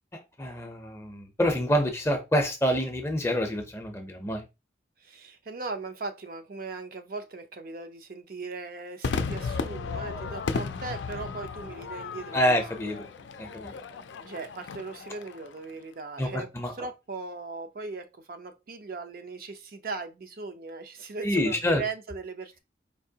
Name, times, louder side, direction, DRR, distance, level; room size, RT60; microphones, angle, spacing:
voice 1, 0.4-4.4 12.3-13.0 13.4-13.7 16.2-16.7 21.2-21.8, equal, 15° left, 0.5 m, -27 dB
voice 2, 5.0-12.6 14.2-22.6, right 3 dB, 50° right, 0.5 m, -38 dB
Crowd / Fireworks, 9.0-15.6, left 4 dB, 75° left, 0.4 m, -35 dB
4.5 x 2.8 x 2.7 m
head